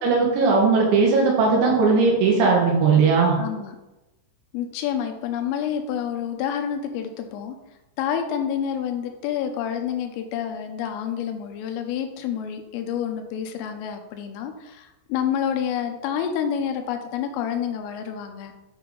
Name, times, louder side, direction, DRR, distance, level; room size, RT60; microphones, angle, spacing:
voice 1, 0.0-3.4, right 4 dB, 70° right, -2 dB, 3.6 m, -18 dB
voice 2, 3.4-3.8 4.5-7.6 8.0-18.5, left 8 dB, 85° left, 6 dB, 3.3 m, -28 dB
8.8 x 5.5 x 3.8 m, 0.99 s
omnidirectional pair, 5.9 m